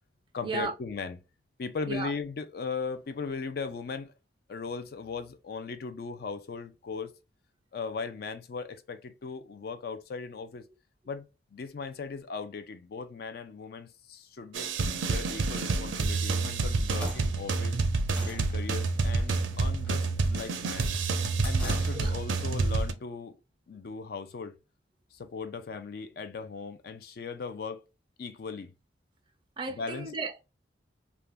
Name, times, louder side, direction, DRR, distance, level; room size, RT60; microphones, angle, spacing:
voice 1, 0.3-1.2 1.6-4.1 4.5-7.1 7.7-10.7 11.1-14.7 15.0-17.8 18.2-20.9 21.4-23.4 23.7-24.6 25.1-27.8 28.2-28.7 29.7-30.1, left 5 dB, 55° left, 0.4 m, -38 dB
sound 1, 14.5-22.9, right 3 dB, 90° right, 0.4 m, -28 dB
sound 2, 16.8-22.4, equal, 5° left, 0.7 m, -43 dB
voice 2, 29.6-30.4, right 3 dB, 25° right, 0.3 m, -34 dB
2.4 x 2.2 x 3.2 m
head